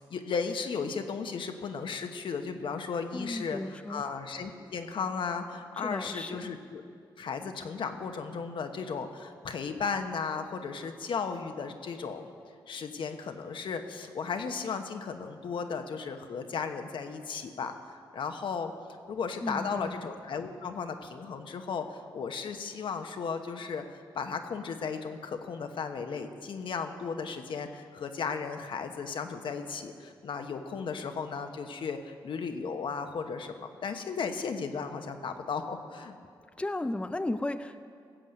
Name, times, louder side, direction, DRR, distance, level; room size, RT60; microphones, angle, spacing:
voice 1, 0.1-6.8 7.2-12.3 12.7-17.7 18.1-18.7 19.1-23.8 24.1-36.2, left 5 dB, 70° left, 6 dB, 1.0 m, -35 dB
voice 2, 3.1-4.0 5.8-6.4 19.4-20.0 36.6-37.8, left 2 dB, 15° left, 10 dB, 0.5 m, -34 dB
16.0 x 7.8 x 6.5 m, 2.3 s
cardioid pair, 60°, 9 cm